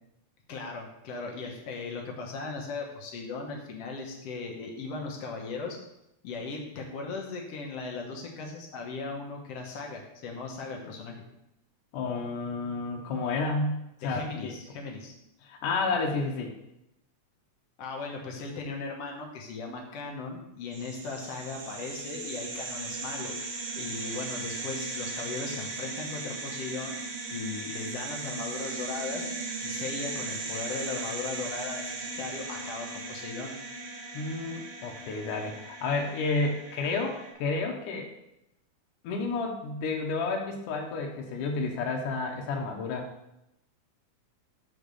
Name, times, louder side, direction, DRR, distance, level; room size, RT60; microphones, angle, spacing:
voice 1, 0.5-5.8 6.2-11.2 14.0-15.1 17.8-33.5, left 4 dB, 60° left, 0 dB, 1.9 m, -38 dB
voice 2, 11.9-14.5 15.4-16.6 34.1-38.1 39.0-43.1, left 3 dB, 90° left, 2 dB, 2.5 m, -31 dB
sound 1, 20.7-37.3, right 3 dB, 70° right, 2.4 m, -37 dB
6.7 x 4.0 x 6.2 m, 0.85 s
omnidirectional pair, 3.5 m